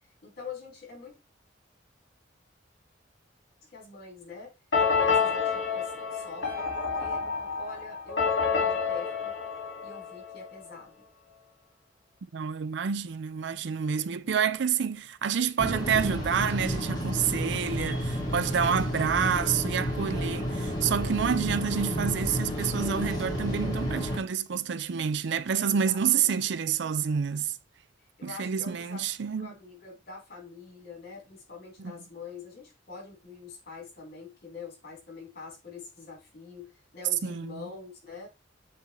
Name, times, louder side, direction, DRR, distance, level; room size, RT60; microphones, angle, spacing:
voice 1, 0.2-1.2 3.7-9.3 9.8-11.0 25.5-26.4 28.2-38.3, left 4 dB, 55° left, 3.8 m, -45 dB
sound 1, 4.7-10.5, left 5 dB, 75° left, 2.0 m, -28 dB
voice 2, 12.3-27.6 28.2-29.5 31.8-31.9 37.2-37.7, right 7 dB, 70° right, 0.5 m, -28 dB
sound 2, 15.6-24.2, equal, 25° left, 2.0 m, -31 dB
8.1 x 3.9 x 3.0 m
head